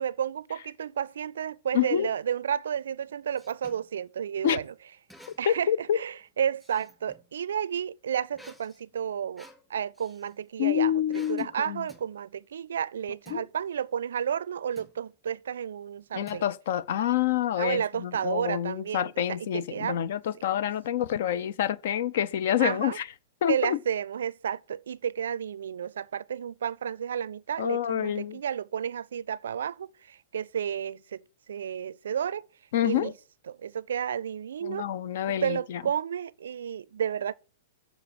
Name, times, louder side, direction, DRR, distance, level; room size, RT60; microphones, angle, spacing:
voice 1, 0.0-4.7 5.4-10.9 11.3-16.4 17.6-20.0 22.6-23.0 23.5-31.2 31.5-32.5 32.8-33.1 33.5-34.9 35.3-37.4, right 8 dB, 75° right, 0.4 m, -32 dB
voice 2, 1.7-2.1 4.4-4.6 5.5-6.0 10.6-11.8 13.3-13.4 16.1-23.1 23.4-23.8 27.6-28.4 32.7-33.1 34.6-35.8, left 10 dB, 65° left, 0.6 m, -27 dB
sound 1, 2.8-3.9 5.1-5.7 6.0-7.3 8.3-10.3 11.1-11.5 11.9-12.1 13.2-13.5 14.8-15.0 16.3-16.8, equal, 5° left, 3.1 m, -53 dB
7.1 x 6.8 x 7.8 m
hypercardioid pair, 115°, 0 cm